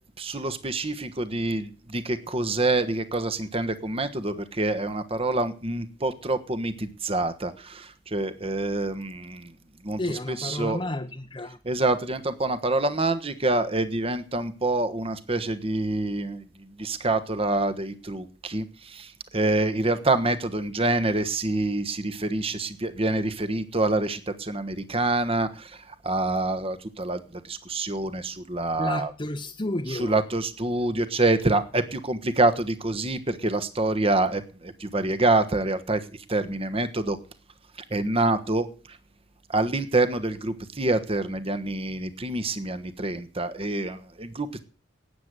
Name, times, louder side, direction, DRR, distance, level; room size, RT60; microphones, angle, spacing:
voice 1, 0.2-9.5 9.8-10.8 11.6-16.4 16.8-25.8 26.0-29.1 29.9-36.0 36.3-37.2 37.9-38.7 39.5-44.6, right 2 dB, 30° right, 1.3 m, -26 dB
voice 2, 10.0-11.6 28.8-30.1, left 1 dB, 30° left, 0.9 m, -31 dB
13.0 x 9.4 x 8.1 m
head